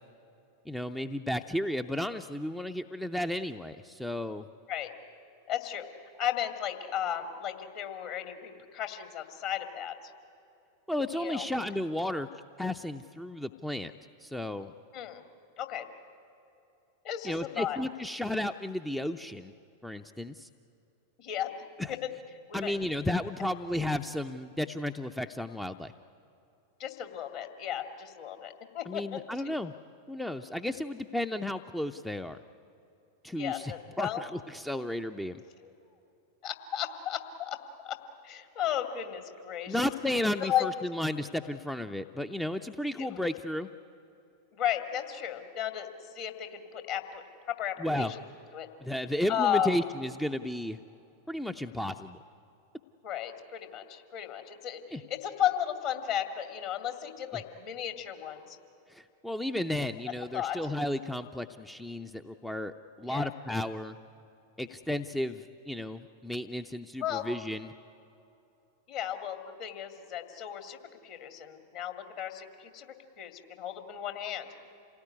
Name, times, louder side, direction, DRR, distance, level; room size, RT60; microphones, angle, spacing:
voice 1, 0.7-4.5 10.9-12.3 12.6-13.9 14.2-14.7 17.2-19.5 19.8-20.5 21.8-22.0 22.5-25.9 28.9-29.7 30.1-32.4 33.2-35.4 39.7-43.7 47.8-48.1 48.8-50.8 51.3-52.2 54.9-55.0 57.3-57.4 58.9-64.0 64.6-67.7, left 1 dB, 5° left, 9 dB, 0.6 m, -33 dB
voice 2, 5.5-5.9 6.2-10.1 11.1-11.4 14.9-15.2 15.6-15.9 17.0-17.8 21.2-21.5 21.9-22.1 22.5-22.7 26.8-29.2 33.4-34.2 35.6-35.7 36.4-37.6 37.8-38.0 38.2-39.9 40.4-40.9 43.0-43.2 44.5-48.2 48.5-48.7 49.3-49.7 53.0-58.6 60.3-60.6 63.1-63.3 67.0-67.3 68.9-70.8 71.0-74.5, left 10 dB, 45° left, 7 dB, 2.3 m, -34 dB
27.5 x 18.0 x 9.8 m, 2.8 s
figure-of-eight pair, 90°, 0 cm